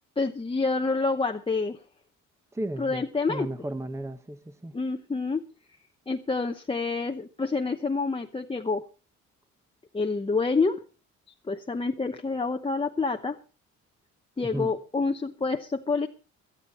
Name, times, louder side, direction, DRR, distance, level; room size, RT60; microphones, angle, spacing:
voice 1, 0.2-1.8 2.8-3.5 4.7-5.4 6.1-8.8 9.9-10.8 11.4-13.4 14.4-16.1, left 4 dB, 20° left, 0.8 m, -27 dB
voice 2, 2.5-4.8 14.4-14.7, right 1 dB, 10° right, 1.0 m, -34 dB
17.5 x 12.0 x 4.2 m
cardioid pair, 90°, 30 cm